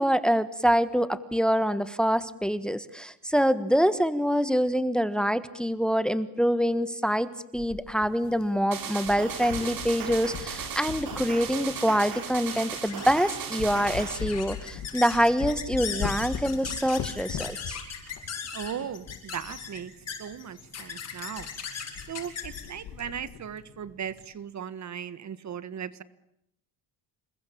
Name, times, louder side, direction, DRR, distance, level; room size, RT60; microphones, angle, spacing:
voice 1, 0.0-17.8, equal, ahead, 15 dB, 1.3 m, -25 dB
sound 1, 7.6-8.7 9.0-12.0 12.6-12.7 13.1-13.3 13.6-19.7 19.9-20.0 20.3-20.4 20.8-21.0 21.4-21.5 21.8-22.1 22.4-23.4, left 8 dB, 60° left, 2.5 m, -39 dB
sound 2, 8.7-14.2, right 7 dB, 60° right, 6.2 m, -36 dB
sound 3, 11.5-24.3, left 6 dB, 40° left, 7.7 m, -40 dB
voice 2, 18.5-19.9 20.2-21.5 22.1-26.0, right 8 dB, 45° right, 16 dB, 1.6 m, -37 dB
28.0 x 21.5 x 8.6 m, 0.79 s
cardioid pair, 115°, 38 cm